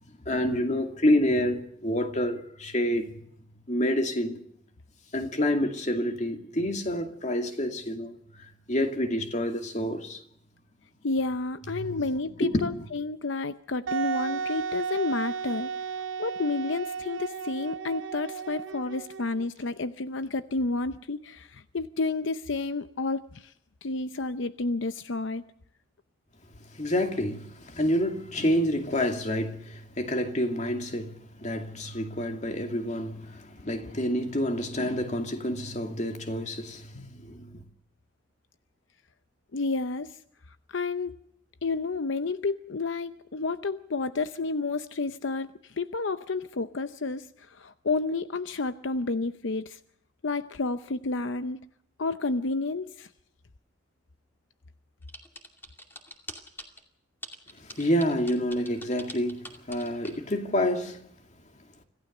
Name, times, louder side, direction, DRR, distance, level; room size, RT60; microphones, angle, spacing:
voice 1, 0.3-3.1 3.7-4.4 5.1-10.2 11.7-12.0 12.4-12.9 26.6-37.6 57.5-61.1, equal, 35° left, 2.4 m, -28 dB
voice 2, 11.0-15.7 16.2-23.5 23.8-25.4 36.9-37.2 39.5-40.2 40.7-41.1 41.6-49.8 50.2-51.6 52.0-53.1, left 3 dB, 75° left, 0.7 m, -30 dB
Wind instrument woodwind instrument, 13.9-19.5, right 6 dB, 75° right, 0.7 m, -34 dB
sound 1, 55.1-56.8 57.2-60.2, left 1 dB, 10° left, 2.4 m, -43 dB
26.0 x 15.5 x 6.7 m
head